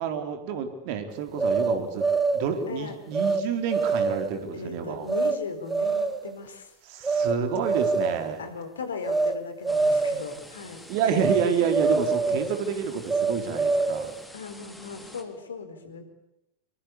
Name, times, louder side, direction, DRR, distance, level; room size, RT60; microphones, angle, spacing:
voice 1, 0.0-2.1 2.3-5.1 6.9-8.5 10.9-14.2, right 7 dB, 45° right, 7 dB, 4.3 m, -29 dB
sound 1, 1.4-2.5 3.1-3.4 3.7-4.3 5.1-5.4 5.7-6.2 7.0-7.4 7.6-8.3 9.0-9.4 9.6-10.3 11.2-11.5 11.7-12.5 13.1-14.1, right 4 dB, 15° right, 1.9 m, -24 dB
voice 2, 2.7-3.0 4.5-6.7 8.4-10.9 11.6-11.7 14.3-16.0, left 5 dB, 65° left, 9 dB, 4.4 m, -37 dB
sound 2, 9.7-15.2, left 1 dB, 5° left, 3.9 m, -47 dB
26.5 x 24.0 x 8.5 m, 0.88 s
figure-of-eight pair, 90°, 0 cm